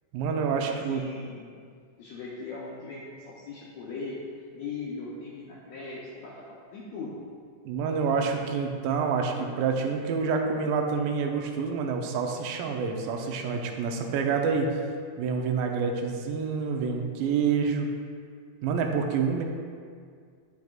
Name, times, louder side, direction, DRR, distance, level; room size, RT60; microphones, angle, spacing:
voice 1, 0.1-1.0 7.7-14.7 15.2-17.9 18.6-19.4, right 5 dB, 90° right, 3 dB, 2.3 m, -27 dB
voice 2, 0.7-1.6 2.0-7.2, left 3 dB, 80° left, -5 dB, 1.5 m, -39 dB
10.5 x 4.8 x 2.4 m, 2.1 s
omnidirectional pair, 4.0 m